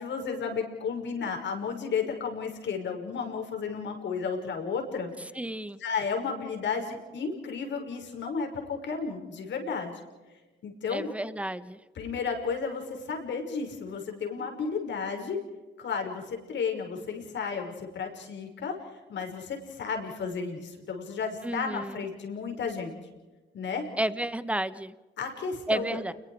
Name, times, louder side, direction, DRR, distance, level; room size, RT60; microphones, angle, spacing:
voice 1, 0.0-5.1 5.8-10.0 10.6-11.1 11.9-15.4 15.8-18.7 19.1-22.9 23.5-23.9 25.2-26.0, left 5 dB, 65° left, 3 dB, 5.7 m, -33 dB
voice 2, 5.4-5.8 10.9-11.8 21.4-22.0 24.0-24.9 25.7-26.1, right 1 dB, 5° right, 14 dB, 1.2 m, -31 dB
29.5 x 22.0 x 4.9 m, 1.2 s
cardioid pair, 90°, 20 cm